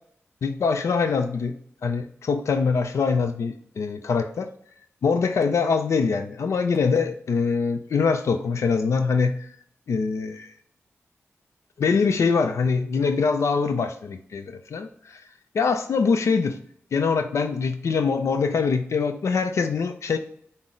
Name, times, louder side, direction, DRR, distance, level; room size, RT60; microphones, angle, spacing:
voice 1, 0.4-4.5 5.0-9.5 9.9-10.5 11.8-15.2 15.5-16.6 16.9-20.2, left 5 dB, 80° left, 8 dB, 0.4 m, -23 dB
5.7 x 2.0 x 3.7 m, 0.63 s
cardioid pair, 50°, 5 cm